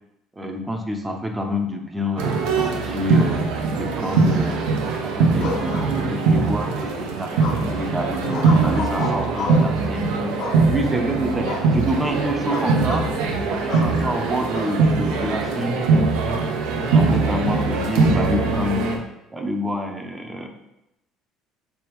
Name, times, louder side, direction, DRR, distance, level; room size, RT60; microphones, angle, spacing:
voice 1, 0.3-3.4 3.7-4.6 5.0-10.2 10.7-13.1 13.5-16.1 16.9-19.0 19.3-20.5, equal, 15° right, 3 dB, 0.5 m, -27 dB
sound 1, 2.2-19.0, right 4 dB, 90° right, 0.5 m, -21 dB
sound 2, 5.4-6.4 7.4-7.9 8.3-9.7 10.4-11.0 11.4-11.7 12.0-12.2 12.5-13.1 13.7-13.9 14.5-15.3, left 4 dB, 60° left, 0.6 m, -31 dB
3.4 x 3.2 x 3.0 m, 0.89 s
cardioid pair, 105°, 0 cm